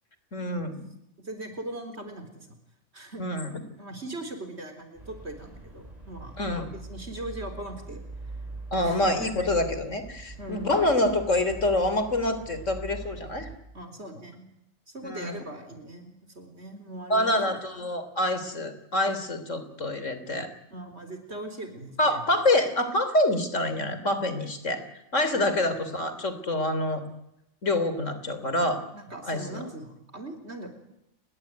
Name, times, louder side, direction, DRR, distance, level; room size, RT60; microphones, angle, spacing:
voice 1, 0.3-0.9 3.2-3.5 6.4-6.7 8.7-13.5 15.0-15.4 17.1-20.5 22.0-24.8 25.1-27.0 27.6-28.9 29.2-29.6, left 1 dB, 85° left, 11 dB, 3.7 m, -26 dB
voice 2, 1.2-2.6 2.9-3.2 3.8-6.4 6.7-8.0 8.8-9.1 10.4-10.7 13.7-14.5 14.9-17.6 20.7-22.2 25.3-25.5 28.9-30.7, right 1 dB, 60° right, 7 dB, 4.4 m, -40 dB
sound 1, 4.9-13.5, right 2 dB, 30° right, 6.6 m, -42 dB
29.5 x 21.5 x 9.4 m, 0.84 s
omnidirectional pair, 1.3 m